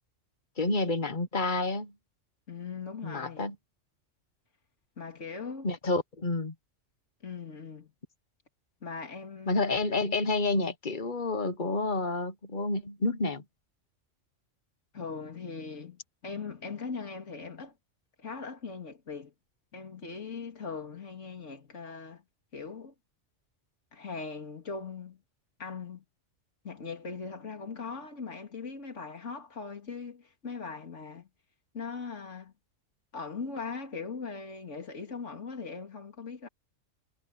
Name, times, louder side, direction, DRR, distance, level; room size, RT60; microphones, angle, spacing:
voice 1, 0.6-1.9 3.0-3.5 5.6-6.5 9.5-13.4, left 3 dB, 40° left, 1.4 m, -29 dB
voice 2, 2.5-3.5 5.0-5.7 7.2-7.9 8.8-9.6 14.9-17.7 18.2-19.3 19.7-22.2 22.5-22.9 23.9-25.2 25.6-26.0 26.6-31.3 31.7-32.5 33.1-36.5, left 5 dB, 70° left, 3.0 m, -40 dB
omnidirectional pair, 1.3 m